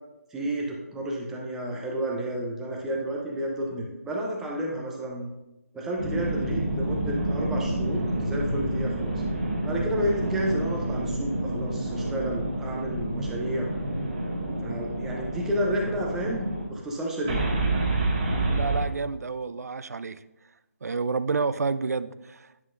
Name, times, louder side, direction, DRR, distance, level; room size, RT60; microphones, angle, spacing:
voice 1, 0.3-5.3 5.7-9.1 9.6-13.7 14.6-17.4, right 1 dB, 5° right, -2 dB, 0.4 m, -31 dB
sound 1, 6.0-16.6 17.2-18.8, right 1 dB, 25° right, 1.6 m, -28 dB
voice 2, 18.5-20.2 20.8-22.5, right 4 dB, 80° right, 15 dB, 0.4 m, -29 dB
9.8 x 5.9 x 2.5 m, 0.96 s
figure-of-eight pair, 165°, 8 cm